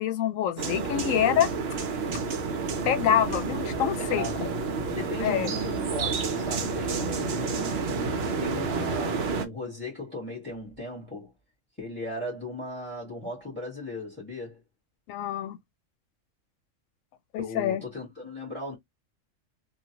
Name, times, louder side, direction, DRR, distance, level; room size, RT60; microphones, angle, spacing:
voice 1, 0.0-1.5 2.8-4.5 5.2-5.5 15.1-15.6 17.3-17.8, left 10 dB, 85° left, 1.0 m, -26 dB
sound 1, 0.6-9.5, right 4 dB, 60° right, 0.8 m, -30 dB
voice 2, 4.0-4.5 4.9-8.0 8.4-11.3 11.8-14.6 17.4-18.7, left 1 dB, 10° left, 1.4 m, -37 dB
3.1 x 2.4 x 2.8 m
omnidirectional pair, 1.3 m